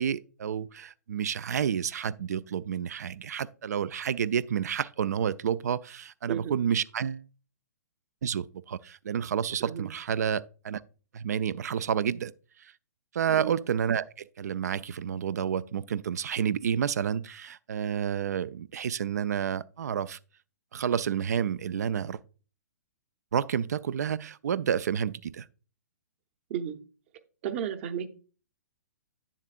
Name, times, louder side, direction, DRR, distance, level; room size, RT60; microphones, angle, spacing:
voice 1, 0.0-7.2 8.2-10.8 11.1-12.3 12.6-12.7 13.1-20.2 20.7-22.2 23.3-25.5, right 8 dB, 70° right, 0.4 m, -30 dB
voice 2, 27.4-28.1, right 9 dB, 45° right, 0.8 m, -33 dB
8.9 x 7.2 x 2.4 m
hypercardioid pair, 120°, 9 cm